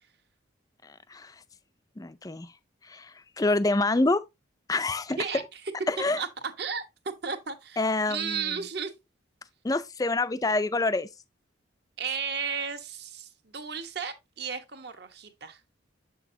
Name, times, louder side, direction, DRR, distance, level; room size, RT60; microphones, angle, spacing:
voice 1, 0.8-1.3 2.0-2.5 2.8-4.2 4.7-5.2 5.9-6.2 7.8-8.6 9.6-11.1, left 2 dB, 20° left, 0.4 m, -27 dB
voice 2, 7.2-8.9 12.0-15.6, right 6 dB, 55° right, 1.1 m, -34 dB
7.6 x 6.2 x 2.6 m
head